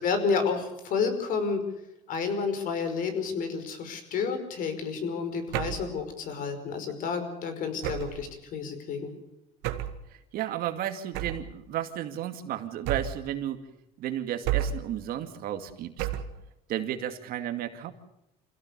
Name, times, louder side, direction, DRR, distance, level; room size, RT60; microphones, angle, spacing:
voice 1, 0.0-1.6 2.1-9.1, left 5 dB, 50° left, 9 dB, 5.2 m, -30 dB
sound 1, 5.5-5.9 7.8-8.3 9.6-10.0 11.1-11.5 12.9-13.3 14.5-14.9 16.0-16.4, right 11 dB, 75° right, 2.0 m, -31 dB
voice 2, 10.3-13.6 14.0-16.1 16.7-17.9, right 11 dB, 55° right, 7 dB, 2.4 m, -33 dB
27.0 x 16.5 x 7.0 m, 0.87 s
cardioid pair, 135°, 18 cm